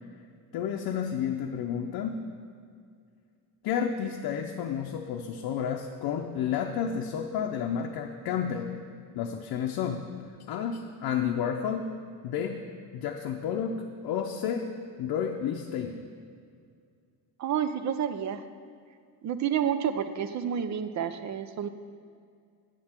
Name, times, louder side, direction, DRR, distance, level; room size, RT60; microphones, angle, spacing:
voice 1, 0.5-2.2 3.6-8.7 9.1-10.0 10.5-11.9 12.2-12.6 12.9-14.7 15.0-16.0, left 8 dB, 75° left, 1 dB, 0.7 m, -31 dB
voice 2, 17.4-18.4 19.2-21.7, right 8 dB, 50° right, 11 dB, 0.5 m, -29 dB
9.7 x 7.5 x 4.4 m, 2.2 s
cardioid pair, 155°, 38 cm